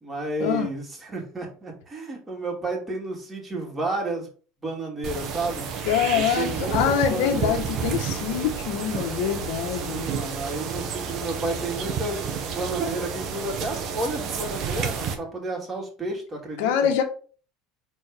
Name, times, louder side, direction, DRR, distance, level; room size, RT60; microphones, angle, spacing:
voice 1, 0.0-4.3 4.6-5.7 6.1-7.6 9.7-16.7, right 2 dB, 20° right, 2.7 m, -31 dB
sound 1, 5.0-15.1, right 6 dB, 55° right, 1.5 m, -30 dB
voice 2, 5.8-10.1 16.6-17.0, left 8 dB, 75° left, 1.4 m, -24 dB
4.6 x 4.2 x 5.0 m
supercardioid pair, 100°, 0 cm